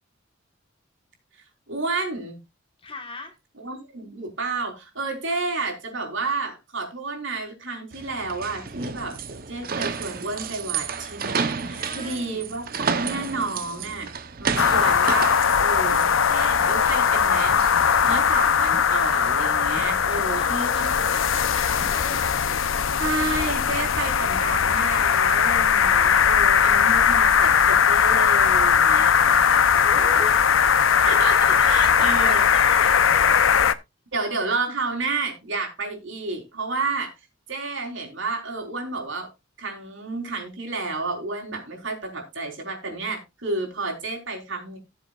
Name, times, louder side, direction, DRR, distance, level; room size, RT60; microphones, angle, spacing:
voice 1, 1.7-2.4 3.6-9.2 9.5-12.6 12.9-14.1 14.4-17.6 18.0-21.0 23.0-29.2 31.1-32.4 34.1-37.1 37.5-39.3 39.6-44.8, right 3 dB, 70° right, 3.9 m, -30 dB
voice 2, 2.8-3.4 11.7-12.4 20.1-22.5 29.3-30.6 30.9-31.2 31.5-33.4, left 3 dB, 25° left, 1.6 m, -37 dB
sound 1, 7.9-18.3, right 5 dB, 45° right, 0.9 m, -32 dB
sound 2, 14.6-33.7, left 7 dB, 85° left, 0.7 m, -19 dB
sound 3, 15.8-17.0 17.4-23.9, equal, 5° right, 6.6 m, -47 dB
18.0 x 7.2 x 2.4 m
head